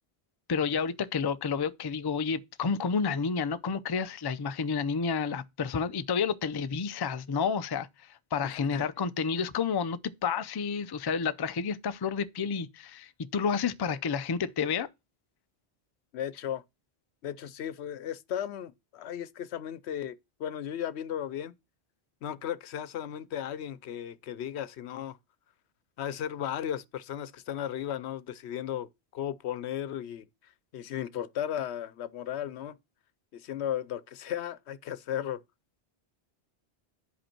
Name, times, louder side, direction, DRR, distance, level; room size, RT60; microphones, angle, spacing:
voice 1, 0.5-14.9, left 6 dB, 40° left, 0.3 m, -30 dB
voice 2, 8.4-8.9 16.1-16.6 17.2-21.5 22.2-25.2 26.0-32.8 33.3-35.4, left 10 dB, 80° left, 0.9 m, -35 dB
9.9 x 5.3 x 4.4 m
omnidirectional pair, 1.1 m